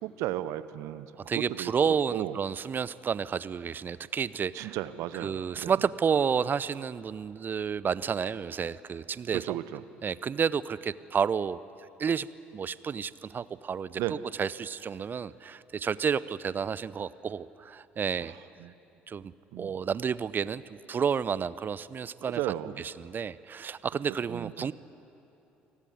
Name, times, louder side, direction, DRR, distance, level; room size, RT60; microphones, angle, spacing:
voice 1, 0.0-1.1 1.3-2.4 4.5-5.7 9.3-9.8 14.0-14.2 18.2-18.3 18.6-18.7 19.5-19.7 22.2-22.9 24.3-24.7, right 14 dB, 65° right, 15 dB, 0.9 m, -35 dB
voice 2, 1.2-4.8 5.2-9.6 10.0-11.6 12.0-12.3 12.5-18.3 19.1-22.4 22.8-24.7, right 6 dB, 40° right, 18 dB, 0.8 m, -31 dB
28.5 x 18.5 x 9.6 m, 2.9 s
hypercardioid pair, 55°, 5 cm